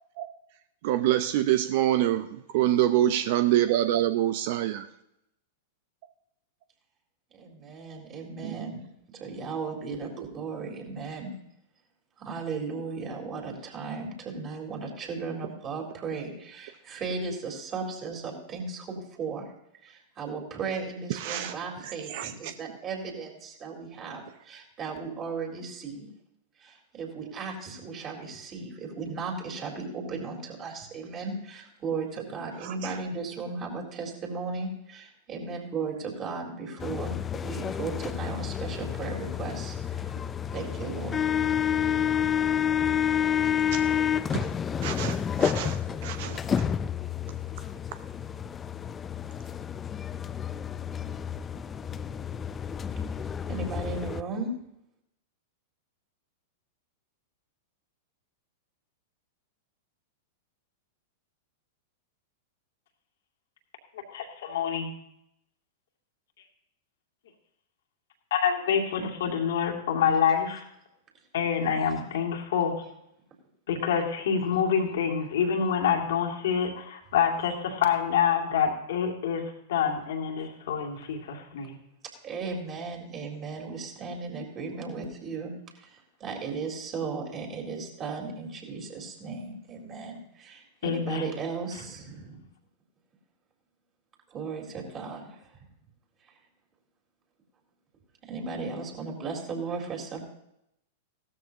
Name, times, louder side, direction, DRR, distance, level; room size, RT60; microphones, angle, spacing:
voice 1, 0.8-4.9 8.4-8.7 21.2-21.5 22.1-22.3 32.6-32.9 43.7-43.8 44.3-44.5 44.8-45.8 46.0-46.4, right 12 dB, 55° right, 10 dB, 0.6 m, -26 dB
voice 2, 7.3-8.9 9.1-11.3 12.2-19.5 19.8-26.1 26.6-37.1 37.4-40.1 40.5-41.2 53.5-54.5 71.6-72.1 82.2-92.4 94.3-95.5 98.3-100.2, right 4 dB, 35° right, 0 dB, 4.1 m, -36 dB
sound 1, 36.8-54.2, left 8 dB, 20° left, 0.4 m, -29 dB
voice 3, 64.1-64.9 68.3-70.6 71.3-72.7 73.7-81.8 90.8-91.3, left 7 dB, 65° left, 1 dB, 2.4 m, -27 dB
16.5 x 13.0 x 2.9 m, 0.79 s
hypercardioid pair, 100°, 0 cm